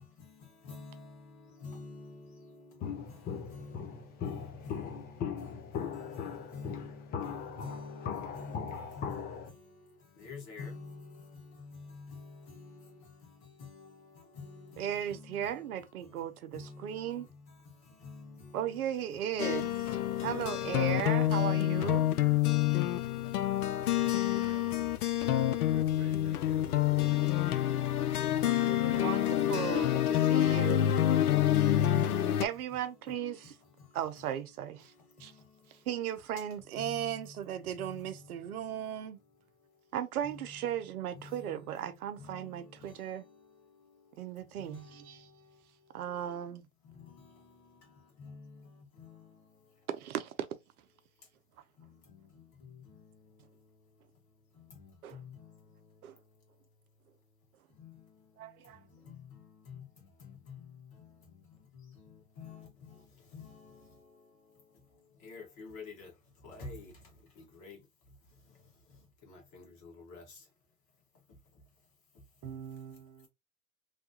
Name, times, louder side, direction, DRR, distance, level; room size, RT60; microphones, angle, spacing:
voice 1, 0.0-16.3 16.5-30.7 32.7-34.5 34.8-35.9 36.8-39.9 40.2-40.7 41.1-46.3 46.8-49.9 51.8-54.0 54.5-56.4 57.7-70.5 71.3-71.6 72.1-72.2, left 4 dB, 40° left, 1.5 m, -51 dB
Walk footsteps, 2.8-9.5, left 7 dB, 20° left, 0.5 m, -39 dB
voice 2, 14.8-17.3 18.5-19.7 20.2-22.1 28.9-30.9 32.4-33.6 33.9-34.9 35.2-35.3 35.7-39.2 39.9-43.2 44.2-45.2 45.9-46.6 49.9-50.3 55.0-55.2 56.0-56.2 58.4-58.8, right 10 dB, 75° right, 0.6 m, -36 dB
sound 1, 19.4-32.5, left 12 dB, 80° left, 0.5 m, -28 dB
voice 3, 24.0-25.0 25.5-26.8 31.9-32.0 72.4-73.3, right 5 dB, 35° right, 1.1 m, -48 dB
3.2 x 2.3 x 2.7 m
hypercardioid pair, 100°, 44 cm